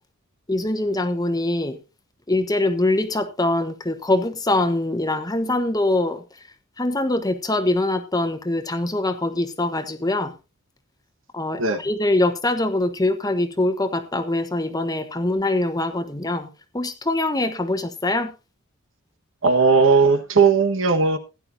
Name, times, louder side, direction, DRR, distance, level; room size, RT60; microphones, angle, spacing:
voice 1, 0.5-1.8 2.3-6.4 6.8-10.3 11.3-16.5 16.7-18.3, left 2 dB, 20° left, 1.2 m, -23 dB
voice 2, 19.4-21.2, right 4 dB, 65° right, 1.4 m, -17 dB
16.5 x 11.0 x 2.7 m
head